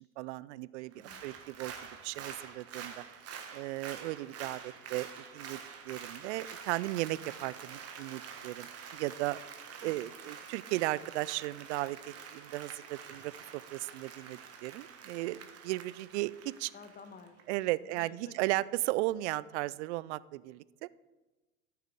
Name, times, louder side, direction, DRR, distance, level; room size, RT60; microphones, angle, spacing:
voice 1, 0.2-1.7 2.0-2.9 3.5-5.1 5.3-5.6 5.8-9.4 9.8-12.0 12.3-16.7 17.5-20.9, right 18 dB, 55° right, 20 dB, 0.5 m, -35 dB
voice 2, 0.9-1.2 9.8-10.5 15.7-15.8 16.7-18.7, left 5 dB, 20° left, 9 dB, 1.2 m, -54 dB
Applause, 0.9-17.6 17.9-18.0, right 7 dB, 35° right, 1.5 m, -47 dB
13.5 x 9.3 x 3.7 m, 1.2 s
hypercardioid pair, 90°, 42 cm